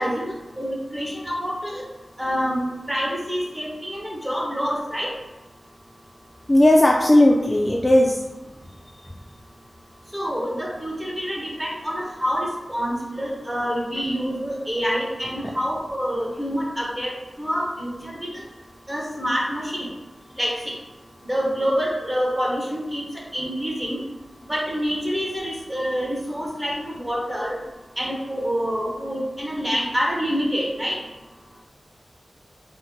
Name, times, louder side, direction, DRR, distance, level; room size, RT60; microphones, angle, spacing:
voice 1, 0.0-1.8 2.2-5.1 10.1-18.3 18.9-19.9 20.4-20.6 21.3-23.0 23.3-24.0 24.5-27.6 28.0-30.9, equal, 20° right, -4 dB, 1.0 m, -27 dB
voice 2, 6.5-8.2, left 1 dB, 20° left, -1 dB, 0.3 m, -16 dB
4.3 x 2.1 x 2.8 m, 1.1 s
wide cardioid pair, 85°, 0 cm